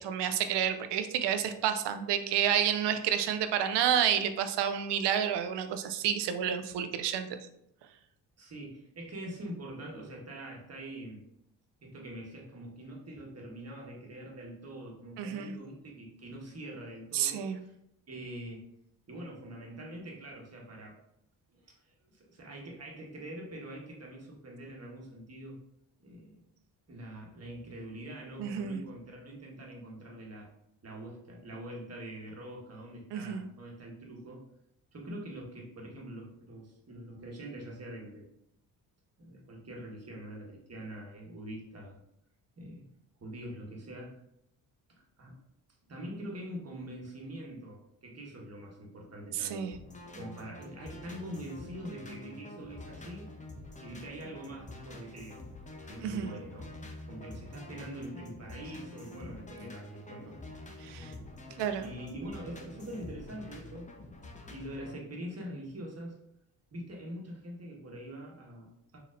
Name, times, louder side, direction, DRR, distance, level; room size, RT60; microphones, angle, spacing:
voice 1, 0.0-7.4 15.2-15.5 17.1-17.6 28.4-28.8 33.1-33.5 49.3-49.8 56.0-56.3 60.8-61.1 61.6-61.9, right 9 dB, 65° right, 9 dB, 0.6 m, -30 dB
voice 2, 8.4-11.2 11.8-17.8 18.1-18.6 19.1-21.0 21.5-25.6 26.0-26.4 26.9-30.5 30.8-34.4 34.9-38.3 39.2-42.0 42.6-42.8 43.2-44.2 45.0-45.4 45.9-49.7 50.1-53.3 53.8-55.4 55.9-56.7 57.0-60.4 60.8-61.3 61.8-63.9 64.5-66.2 66.7-69.0, right 1 dB, 35° right, -1 dB, 1.3 m, -44 dB
sound 1, 49.7-64.9, left 2 dB, 15° left, 0.7 m, -47 dB
4.1 x 2.9 x 2.5 m, 0.77 s
supercardioid pair, 60°, 46 cm